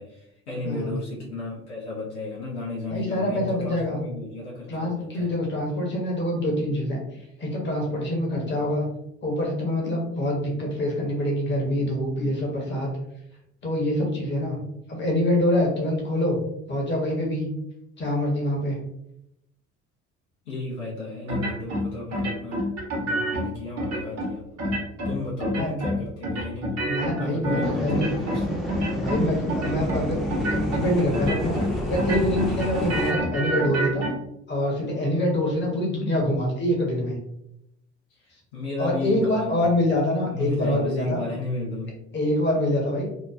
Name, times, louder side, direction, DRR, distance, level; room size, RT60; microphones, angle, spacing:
voice 1, 0.0-5.3 20.4-22.7 23.0-24.4 25.0-26.8 27.2-28.5 38.1-39.8 40.2-42.0, left 2 dB, 70° left, -5 dB, 0.8 m, -33 dB
voice 2, 0.6-1.0 2.9-4.0 4.7-7.0 7.4-8.8 9.2-12.9 13.6-14.6 14.9-16.4 16.7-17.5 18.0-18.8 25.6-25.7 26.8-28.1 29.0-31.6 31.8-34.1 34.5-37.2 38.8-41.2 42.1-43.1, left 1 dB, 30° left, -1 dB, 1.0 m, -25 dB
sound 1, 21.3-21.8 22.1-23.4 23.8-24.3 24.6-25.1 25.4-26.0 26.2-28.4 28.7-29.2 29.5-30.0 30.3-30.8 31.1-31.7 31.9-34.1, equal, 45° right, 1.0 m, -27 dB
sound 2, 27.6-33.1, equal, ahead, 0.7 m, -29 dB
2.9 x 2.2 x 2.4 m, 0.79 s
figure-of-eight pair, 55°, 36 cm